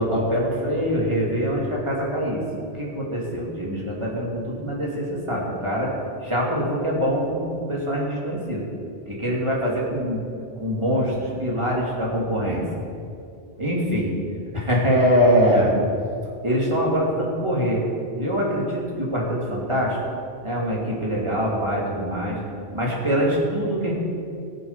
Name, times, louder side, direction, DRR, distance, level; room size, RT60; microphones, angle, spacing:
voice 1, 0.0-2.4 2.7-5.9 6.2-8.6 9.1-10.2 10.6-12.6 13.6-14.1 14.5-15.7 16.4-17.8 18.2-20.0 20.4-22.4 22.7-23.9, equal, 25° right, -4 dB, 3.0 m, -23 dB
18.5 x 7.6 x 5.9 m, 2.5 s
omnidirectional pair, 1.1 m